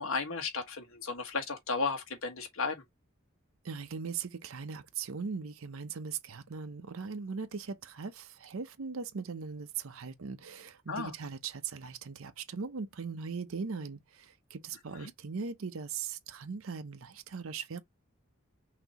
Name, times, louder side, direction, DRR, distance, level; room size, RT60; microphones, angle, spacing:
voice 1, 0.0-2.8 10.9-11.1 15.0-15.1, left 4 dB, 85° left, 1.3 m, -34 dB
voice 2, 3.6-17.8, right 5 dB, 85° right, 0.7 m, -39 dB
5.8 x 2.8 x 2.9 m
head